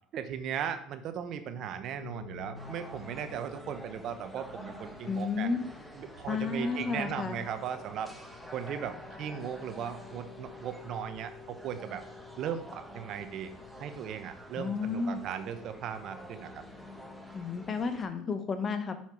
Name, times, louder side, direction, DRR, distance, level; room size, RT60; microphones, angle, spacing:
voice 1, 0.1-5.5 5.9-8.1 8.5-12.0 12.4-13.5 13.8-16.6, right 8 dB, 55° right, 9 dB, 0.8 m, -37 dB
sound 1, 2.0-18.0, left 5 dB, 90° left, 1.4 m, -51 dB
sound 2, 2.5-18.1, right 1 dB, ahead, 1.1 m, -49 dB
voice 2, 5.1-5.6 6.3-7.4 14.6-15.2 17.3-18.9, left 4 dB, 35° left, 9 dB, 0.9 m, -32 dB
5.7 x 4.5 x 4.6 m, 0.63 s
supercardioid pair, 95°, 0 cm